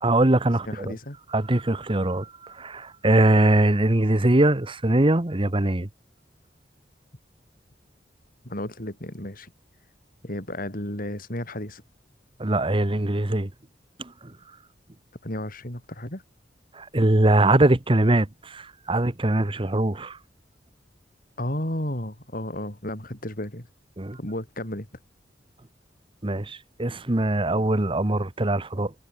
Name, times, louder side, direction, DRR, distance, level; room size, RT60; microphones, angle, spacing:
voice 1, 0.0-0.9 1.3-5.9 12.4-13.5 14.0-14.1 16.7-20.2 24.0-24.2 26.2-28.9, right 1 dB, 30° right, 1.2 m, -22 dB
voice 2, 0.6-1.2 8.4-9.5 10.2-11.8 15.2-16.2 21.4-23.7 24.2-24.9, left 1 dB, 50° left, 4.7 m, -33 dB
head